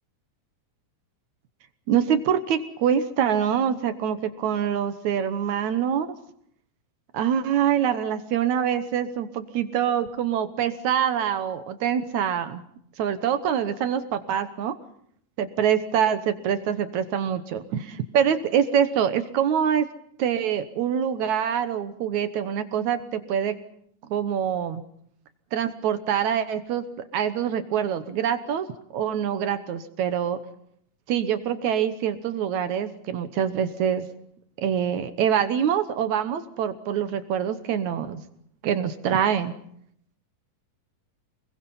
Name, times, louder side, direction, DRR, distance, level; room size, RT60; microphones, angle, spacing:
voice 1, 1.9-6.1 7.1-12.6 13.0-14.7 15.4-19.9 20.2-23.6 24.1-24.8 25.5-26.8 27.1-28.7 28.9-30.4 31.1-34.1 34.6-38.2 38.6-39.5, right 8 dB, 65° right, 10 dB, 2.3 m, -25 dB
27.5 x 21.5 x 5.6 m, 0.68 s
omnidirectional pair, 3.8 m